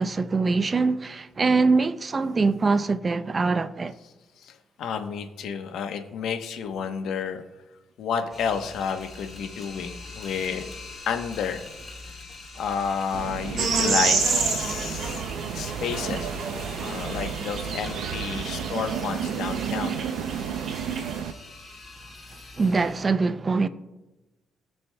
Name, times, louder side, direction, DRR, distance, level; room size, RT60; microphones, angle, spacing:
voice 1, 0.0-3.9 22.6-23.7, right 4 dB, 30° right, 0.5 m, -23 dB
voice 2, 4.4-7.4 8.0-10.7 11.1-11.6 12.5-15.2 15.5-20.0, left 7 dB, 75° left, 1.0 m, -31 dB
sound 1, 8.3-23.1, left 3 dB, 30° left, 2.5 m, -44 dB
sound 2, 13.1-21.3, right 8 dB, 90° right, 0.5 m, -33 dB
sound 3, 13.6-21.2, right 4 dB, 60° right, 2.7 m, -30 dB
20.0 x 6.9 x 2.2 m
cardioid pair, 90°, 0 cm